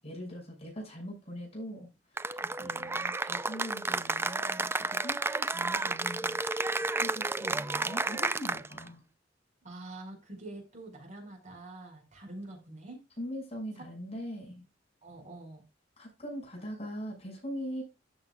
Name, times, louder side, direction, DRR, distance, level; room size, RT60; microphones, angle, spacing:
voice 1, 0.0-1.9 2.3-9.0 13.2-14.6 16.0-17.8, equal, 35° left, 6.3 m, -41 dB
Cheering / Applause, 2.2-8.9, right 3 dB, 15° right, 0.4 m, -32 dB
voice 2, 9.6-13.0 15.0-15.6, right 2 dB, 40° right, 5.4 m, -45 dB
13.5 x 7.7 x 2.4 m
head